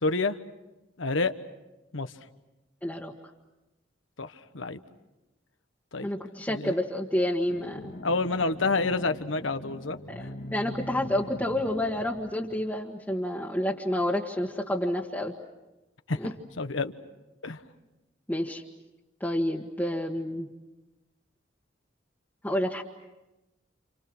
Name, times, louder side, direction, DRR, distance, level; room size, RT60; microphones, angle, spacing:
voice 1, 0.0-0.4 1.0-1.3 1.9-2.1 4.2-4.8 5.9-6.1 6.5-6.7 8.0-10.3 16.1-16.2 16.6-16.9 17.4-17.6, left 3 dB, 85° left, 9 dB, 1.4 m, -28 dB
voice 2, 2.8-3.1 6.0-7.9 10.1-15.3 16.2-16.3 18.3-18.6 19.2-20.5 22.4-22.8, left 1 dB, 10° left, -2 dB, 1.6 m, -29 dB
sound 1, 7.5-12.8, left 1 dB, 60° left, 2.2 m, -42 dB
29.5 x 29.0 x 6.2 m, 1.0 s
head